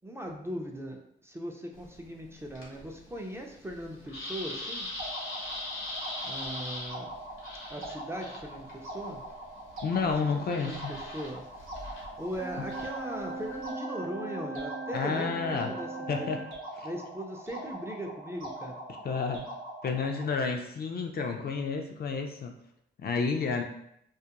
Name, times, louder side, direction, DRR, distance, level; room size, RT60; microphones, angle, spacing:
voice 1, 0.0-4.9 6.2-7.1 7.7-9.2 10.0-10.1 10.5-11.5 12.2-16.3 16.8-18.8, equal, 10° right, 1 dB, 0.4 m, -39 dB
sound 1, 1.7-13.7, left 2 dB, 80° left, 0.8 m, -42 dB
sound 2, 5.0-20.4, right 1 dB, 85° right, 0.7 m, -43 dB
voice 2, 9.8-10.9 12.6-12.7 14.9-15.8 16.1-16.4 16.7-16.9 19.0-19.4 19.8-22.5 23.0-23.6, left 5 dB, 50° left, 4 dB, 0.4 m, -30 dB
sound 3, 12.4-16.5, right 2 dB, 40° right, 0.9 m, -39 dB
2.3 x 2.1 x 2.8 m, 0.74 s
cardioid pair, 55°, 20 cm